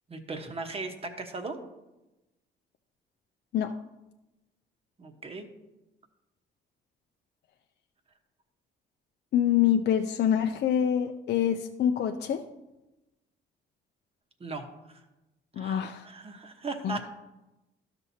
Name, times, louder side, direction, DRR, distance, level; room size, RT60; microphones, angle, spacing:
voice 1, 0.1-1.6 5.0-5.5 14.4-15.0 15.6-17.1, right 3 dB, 30° right, 5 dB, 1.1 m, -38 dB
voice 2, 9.3-12.4 15.6-16.1 16.8-17.0, left 9 dB, 60° left, 5 dB, 0.5 m, -25 dB
12.5 x 6.0 x 2.8 m, 1.0 s
cardioid pair, 90°, 20 cm